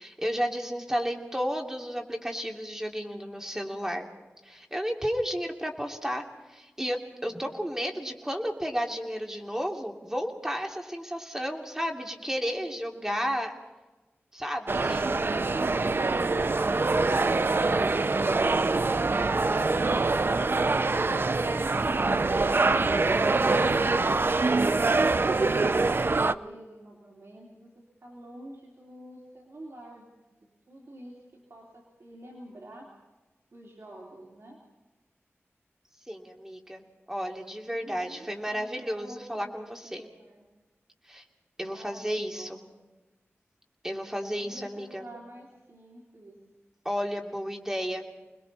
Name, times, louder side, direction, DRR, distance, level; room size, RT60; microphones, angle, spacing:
voice 1, 0.0-4.1 4.4-13.5 14.3-15.2 36.1-36.8 37.1-40.0 41.1-41.2 41.6-42.6 43.8-45.1 46.8-48.1, equal, 10° right, 2 dB, 2.9 m, -32 dB
sound 1, 14.7-26.3, right 3 dB, 50° right, 0.6 m, -24 dB
voice 2, 24.0-30.0 30.4-31.2 31.5-32.9 33.5-34.6 37.7-40.5 41.7-42.8 44.4-46.3, right 1 dB, 70° right, -3 dB, 3.5 m, -48 dB
30.0 x 21.0 x 4.2 m, 1.2 s
wide cardioid pair, 65°, 5 cm